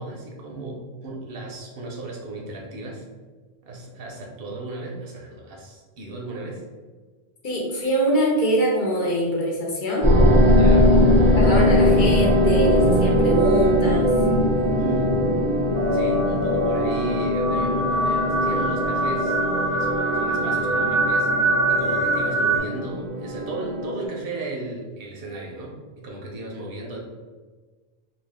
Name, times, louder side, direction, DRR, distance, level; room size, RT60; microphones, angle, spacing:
voice 1, 0.0-3.0 3.6-6.6 10.5-11.0 14.8-15.2 15.9-19.4 19.7-27.0, right 2 dB, 70° right, -1 dB, 0.8 m, -35 dB
voice 2, 7.4-10.1 11.4-14.1, equal, 55° left, -3 dB, 0.8 m, -24 dB
sound 1, 10.0-24.0, equal, 40° right, 0.4 m, -20 dB
sound 2, 15.7-22.6, right 1 dB, 15° left, 0.5 m, -24 dB
2.5 x 2.3 x 3.3 m, 1.4 s
omnidirectional pair, 1.0 m